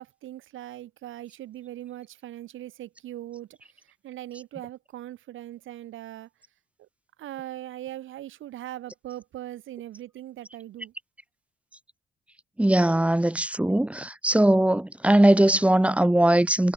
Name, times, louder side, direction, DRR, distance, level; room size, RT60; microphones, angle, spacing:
voice 1, 0.0-6.3 6.8-6.9 7.2-10.9, right 13 dB, 80° right, 2.8 m, -40 dB
voice 2, 12.6-16.7, right 1 dB, 5° right, 1.1 m, -20 dB
cardioid pair, 90°, 20 cm